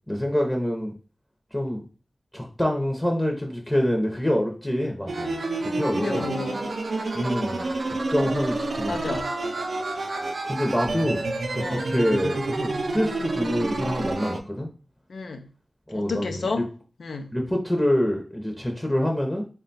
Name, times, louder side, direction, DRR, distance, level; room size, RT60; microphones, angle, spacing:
voice 1, 0.1-0.9 1.5-1.8 2.3-5.3 5.7-6.3 7.1-9.2 10.4-14.7 15.9-16.6 17.3-19.4, equal, 10° left, 0.6 m, -26 dB
sound 1, 5.1-14.4, right 2 dB, 75° right, 0.5 m, -29 dB
voice 2, 6.0-6.7 8.2-8.3 8.9-9.3 11.6-12.0 15.1-15.5 15.9-16.7 17.0-17.3, left 4 dB, 90° left, 0.5 m, -31 dB
3.8 x 2.2 x 3.9 m
wide cardioid pair, 75°, 0 cm